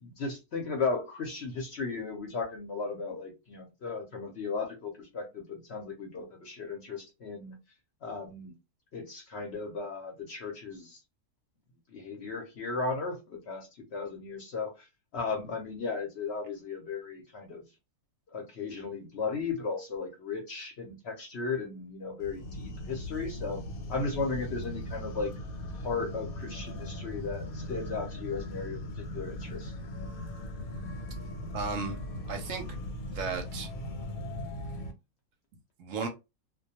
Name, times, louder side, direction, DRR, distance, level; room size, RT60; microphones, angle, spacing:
voice 1, 0.0-7.6 8.0-8.5 8.9-11.0 11.9-14.7 15.1-17.6 18.3-23.6 23.9-25.3 25.8-28.8 29.1-29.7, left 4 dB, 60° left, 0.8 m, -35 dB
sound 1, 22.2-34.9, left 1 dB, 80° left, 1.0 m, -39 dB
voice 2, 31.5-32.0 32.3-32.6 33.1-33.7 35.8-36.1, right 5 dB, 70° right, 0.8 m, -34 dB
2.3 x 2.2 x 2.7 m
omnidirectional pair, 1.5 m